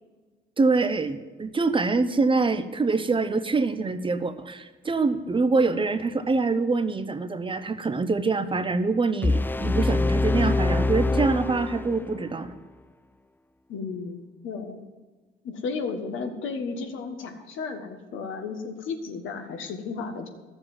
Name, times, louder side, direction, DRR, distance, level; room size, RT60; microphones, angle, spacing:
voice 1, 0.6-12.6, right 3 dB, 25° right, 11 dB, 0.7 m, -25 dB
sound 1, 9.2-12.3, left 2 dB, 10° left, 0.3 m, -24 dB
voice 2, 13.7-14.8 15.4-20.3, left 4 dB, 80° left, 5 dB, 1.5 m, -33 dB
12.5 x 7.1 x 7.2 m, 1.3 s
cardioid pair, 90°, 20 cm